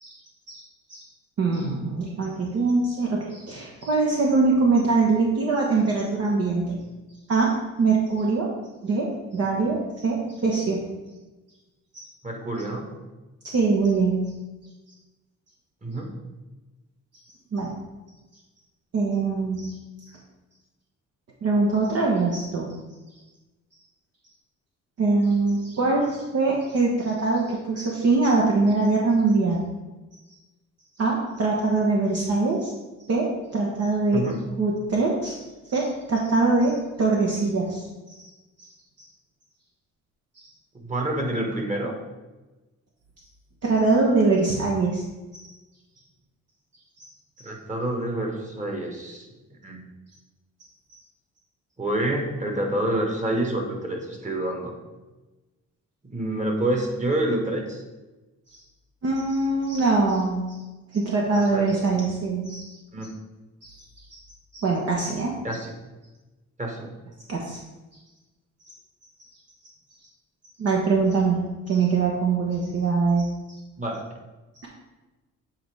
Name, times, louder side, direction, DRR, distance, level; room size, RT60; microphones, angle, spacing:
voice 1, 1.4-6.8 7.3-8.5 8.8-10.9 13.4-14.2 17.5-17.7 18.9-19.7 21.4-22.7 25.0-29.6 31.0-32.7 33.1-34.3 34.6-35.4 35.7-37.9 43.6-45.0 45.3-45.4 59.0-60.4 60.9-62.7 64.5-65.3 67.3-67.6 70.6-73.3, right 3 dB, 55° right, -2 dB, 1.1 m, -23 dB
voice 2, 12.2-12.9 15.8-16.2 34.1-34.5 40.7-41.9 47.4-49.2 49.6-49.8 51.8-54.7 56.0-57.8 61.5-61.7 62.9-63.1 65.4-65.7 66.6-66.9 73.8-74.0, right 1 dB, 25° right, 1 dB, 1.5 m, -27 dB
8.5 x 4.1 x 3.4 m, 1.1 s
cardioid pair, 90°, 30 cm